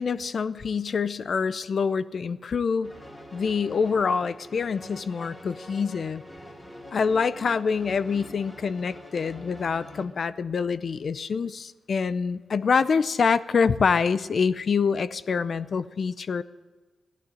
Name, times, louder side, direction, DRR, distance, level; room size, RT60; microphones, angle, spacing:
voice 1, 0.0-2.9 3.3-6.2 6.9-16.4, left 5 dB, 55° left, 15 dB, 0.5 m, -26 dB
sound 1, 2.8-10.1, left 1 dB, 25° left, 2.5 m, -45 dB
15.0 x 11.5 x 7.6 m, 1.3 s
cardioid pair, 85°, 0 cm